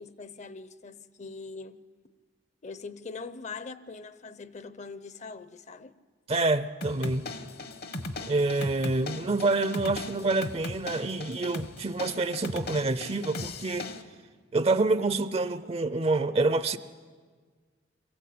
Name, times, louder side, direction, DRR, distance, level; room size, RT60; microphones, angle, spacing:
voice 1, 0.0-1.8 2.6-5.9, left 4 dB, 40° left, 0.7 m, -42 dB
voice 2, 6.3-7.2 8.3-13.9 14.5-16.8, right 3 dB, 35° right, 0.6 m, -27 dB
sound 1, 6.8-14.0, left 2 dB, 60° left, 1.2 m, -38 dB
23.0 x 15.5 x 8.6 m
head